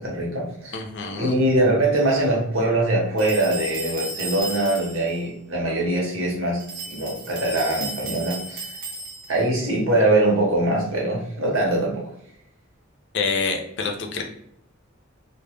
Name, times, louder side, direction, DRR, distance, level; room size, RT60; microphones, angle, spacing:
voice 1, 0.0-0.8 1.2-8.7 9.3-12.0, right 1 dB, 70° right, -2 dB, 0.9 m, -22 dB
voice 2, 0.7-1.4 13.1-14.2, left 4 dB, 60° left, 3 dB, 0.5 m, -27 dB
sound 1, 3.2-5.1 6.6-9.5, right 2 dB, 45° right, 0.6 m, -34 dB
2.2 x 2.1 x 3.0 m, 0.74 s
head